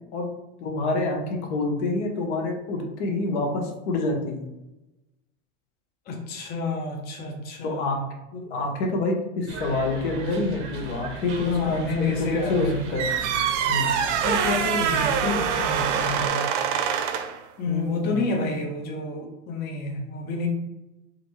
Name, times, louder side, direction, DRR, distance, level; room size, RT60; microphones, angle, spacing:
voice 1, 0.6-4.4 7.6-8.0 8.5-13.1 13.7-14.0 17.6-18.7, left 2 dB, 70° left, 2 dB, 0.9 m, -27 dB
voice 2, 6.1-8.0 8.3-8.6 11.5-12.8 14.2-16.4 17.6-20.5, left 3 dB, 25° left, 1 dB, 0.5 m, -29 dB
sound 1, 9.5-16.3, right 4 dB, 35° right, 0.7 m, -36 dB
sound 2, 13.0-17.4, right 8 dB, 70° right, 0.5 m, -25 dB
3.0 x 2.6 x 3.0 m, 0.96 s
supercardioid pair, 115°, 36 cm